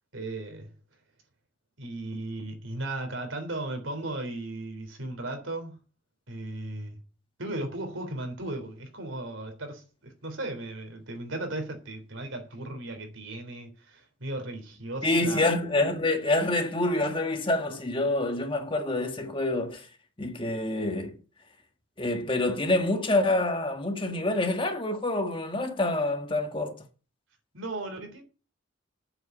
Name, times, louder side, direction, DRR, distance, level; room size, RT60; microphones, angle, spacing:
voice 1, 0.1-0.7 1.8-5.8 6.3-7.0 7.4-15.5 27.5-28.2, right 2 dB, 80° right, 3.6 m, -36 dB
voice 2, 15.0-19.9 20.2-21.2 22.0-26.8, left 2 dB, 25° left, 1.5 m, -27 dB
8.1 x 7.8 x 8.1 m
head